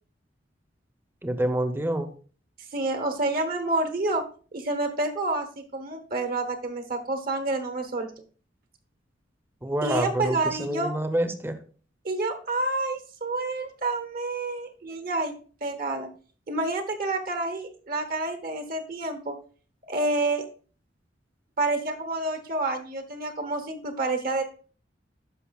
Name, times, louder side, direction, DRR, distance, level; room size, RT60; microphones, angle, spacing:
voice 1, 1.2-2.1 9.6-11.6, right 1 dB, 10° right, 9 dB, 0.7 m, -27 dB
voice 2, 2.7-4.2 4.5-8.1 9.8-10.9 12.0-16.1 16.5-19.4 19.9-20.4 21.6-24.4, right 2 dB, 55° right, 7 dB, 1.0 m, -28 dB
12.5 x 5.4 x 2.3 m, 0.40 s
head